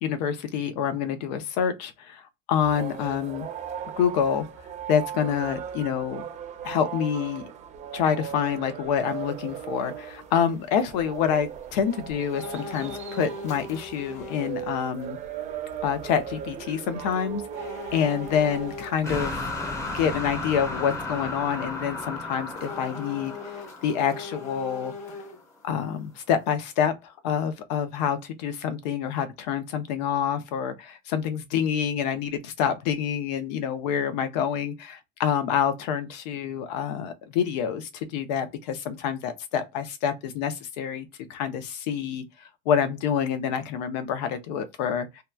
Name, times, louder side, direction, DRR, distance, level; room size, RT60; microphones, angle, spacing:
voice 1, 0.0-3.5 4.0-4.4 4.9-6.3 6.6-7.5 7.9-15.2 15.8-19.5 19.9-24.9 25.6-45.2, left 8 dB, 90° left, 0.7 m, -27 dB
sound 1, 2.6-19.6, right 9 dB, 35° right, 0.6 m, -38 dB
sound 2, 12.3-14.6 15.0-15.1 17.5-19.0 22.5-25.6 26.0-26.1, left 3 dB, 35° left, 1.2 m, -39 dB
sound 3, 19.0-25.1, left 2 dB, 15° left, 0.7 m, -34 dB
2.8 x 2.2 x 2.3 m
cardioid pair, 135°, 21 cm